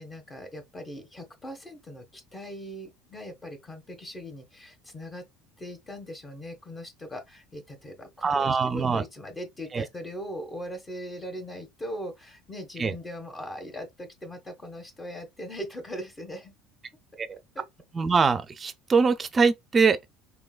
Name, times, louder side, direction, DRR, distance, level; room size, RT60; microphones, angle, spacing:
voice 1, 0.0-5.2 5.6-16.5 17.5-17.6, equal, 25° left, 1.5 m, -40 dB
voice 2, 8.2-9.0 9.7-9.9 12.8-12.9 17.2-17.4 17.9-20.0, right 5 dB, 30° right, 0.6 m, -23 dB
3.8 x 2.9 x 2.4 m
hypercardioid pair, 75°, 0 cm